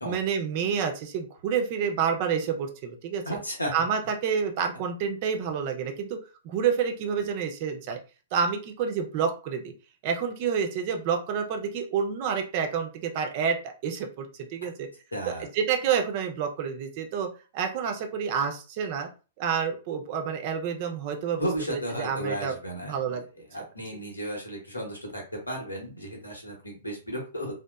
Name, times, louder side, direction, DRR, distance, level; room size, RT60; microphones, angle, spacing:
voice 1, 0.0-3.2 3.7-6.2 6.4-8.0 8.3-9.7 10.0-13.6 13.8-14.9 15.3-17.3 17.5-19.1 19.4-22.6 22.9-23.2, right 7 dB, 40° right, 4 dB, 0.5 m, -28 dB
voice 2, 3.2-3.7 15.1-15.5 21.4-23.2 23.5-27.5, equal, 80° left, 1 dB, 0.9 m, -34 dB
2.8 x 2.0 x 2.2 m, 0.34 s
figure-of-eight pair, 110°, 0 cm